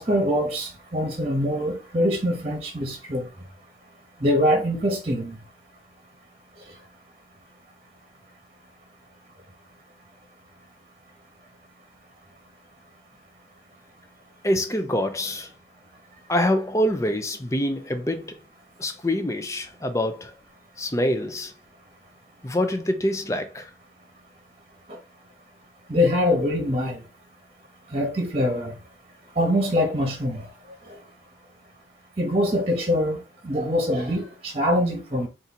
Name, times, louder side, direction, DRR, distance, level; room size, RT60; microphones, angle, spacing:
voice 1, 0.0-3.3 4.2-5.4 24.9-25.0 25.9-27.0 27.9-28.7 29.4-30.4 32.2-35.3, left 1 dB, 35° right, 1.1 m, -24 dB
voice 2, 14.4-15.5 16.3-18.4 18.8-20.4 20.8-21.5 22.4-23.7, left 1 dB, 15° left, 0.6 m, -25 dB
4.2 x 2.7 x 4.2 m
head